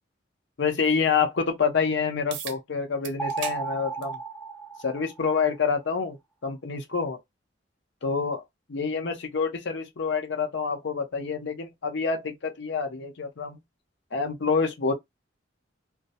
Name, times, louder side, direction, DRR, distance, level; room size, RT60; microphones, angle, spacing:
voice 1, 0.6-4.2 4.8-7.2 8.0-8.4 8.7-13.6 14.1-14.9, left 5 dB, 65° left, 0.6 m, -27 dB
sound 1, 2.3-2.6 3.0-3.6 4.0-4.2 5.2-5.3 10.3-10.4, right 9 dB, 75° right, 0.5 m, -37 dB
sound 2, 3.2-5.6, right 5 dB, 10° left, 0.4 m, -34 dB
2.3 x 2.0 x 2.7 m
head